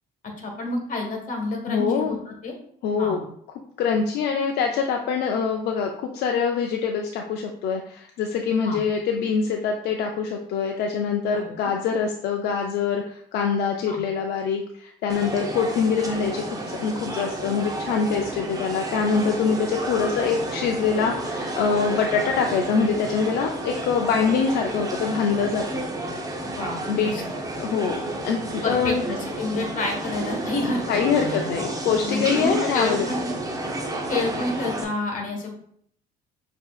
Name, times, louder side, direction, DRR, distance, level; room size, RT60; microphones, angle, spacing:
voice 1, 0.4-2.5 3.0-3.2 8.6-8.8 11.3-11.7 13.9-14.0 26.4-27.2 28.6-31.6 31.9-33.3 34.1-35.6, left 3 dB, 50° left, 1 dB, 1.3 m, -29 dB
voice 2, 1.7-2.2 2.8-3.2 3.8-25.6 26.9-27.1 27.6-29.0 30.9-33.2, left 6 dB, 75° left, 2 dB, 0.5 m, -24 dB
sound 1, 15.1-34.8, right 2 dB, 20° right, 0.7 m, -31 dB
6.8 x 2.8 x 2.4 m, 0.65 s
cardioid pair, 110°, 17 cm